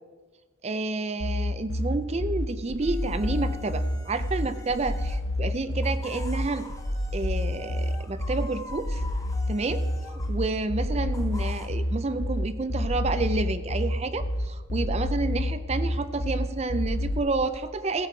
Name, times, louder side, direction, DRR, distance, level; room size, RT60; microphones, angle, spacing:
voice 1, 0.6-6.7 7.1-9.0 9.5-18.1, right 3 dB, 30° right, 11 dB, 0.4 m, -30 dB
sound 1, 1.2-17.2, left 1 dB, 60° left, 1.1 m, -28 dB
sound 2, 2.8-5.2 5.7-10.4 11.1-11.7, left 3 dB, 15° left, 0.8 m, -46 dB
16.0 x 7.6 x 4.5 m, 1.4 s
head